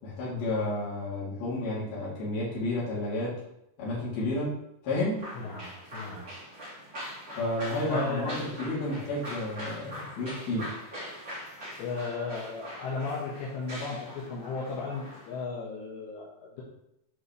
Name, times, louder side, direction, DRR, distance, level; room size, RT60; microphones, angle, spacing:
voice 1, 0.0-3.4 3.8-4.6 4.8-5.3 7.4-10.7, left 1 dB, 60° left, -7 dB, 4.6 m, -31 dB
sound 1, 5.2-15.4, equal, 25° right, 2.6 m, -42 dB
voice 2, 5.4-6.2 7.8-8.4 11.8-16.6, left 4 dB, 85° left, -6 dB, 3.6 m, -35 dB
11.0 x 4.9 x 3.2 m, 0.81 s
omnidirectional pair, 5.0 m